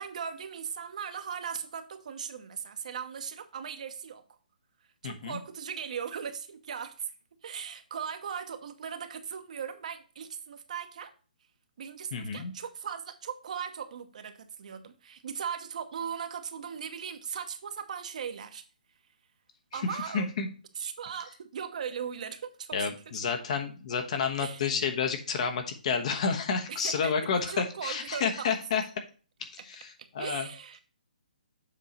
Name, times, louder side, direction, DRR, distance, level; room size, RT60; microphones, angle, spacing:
voice 1, 0.0-4.2 5.0-6.9 7.4-11.1 11.8-18.6 19.7-20.3 20.8-22.9 24.4-24.6 26.7-27.1 27.5-28.5 30.2-30.8, right 7 dB, 55° right, 0.9 m, -38 dB
voice 2, 5.0-5.4 12.1-12.5 19.7-19.8 20.1-20.5 22.7-28.8 29.4-30.5, left 6 dB, 50° left, 1.1 m, -30 dB
7.4 x 4.7 x 4.0 m
hypercardioid pair, 145°, 5 cm